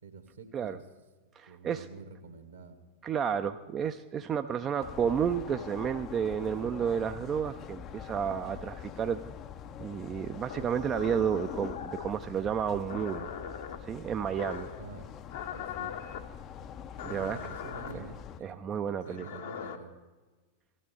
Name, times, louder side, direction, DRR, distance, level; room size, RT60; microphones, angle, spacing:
voice 1, 0.0-0.8 1.5-2.8 14.8-15.1 15.5-15.9 17.0-19.9, right 5 dB, 70° right, 8 dB, 1.4 m, -47 dB
voice 2, 1.4-1.9 3.0-9.2 9.8-13.3 13.8-14.7 17.0-17.4 17.9-18.0 18.4-19.3, right 8 dB, 25° right, 8 dB, 0.4 m, -31 dB
sound 1, 4.8-18.4, left 8 dB, 30° left, 0.5 m, -44 dB
sound 2, 10.5-12.2 12.9-13.8 14.4-14.8 15.3-16.2 17.0-17.9 19.0-19.8, left 8 dB, 55° left, 0.9 m, -40 dB
17.0 x 13.0 x 3.8 m, 1.3 s
figure-of-eight pair, 90°, 0 cm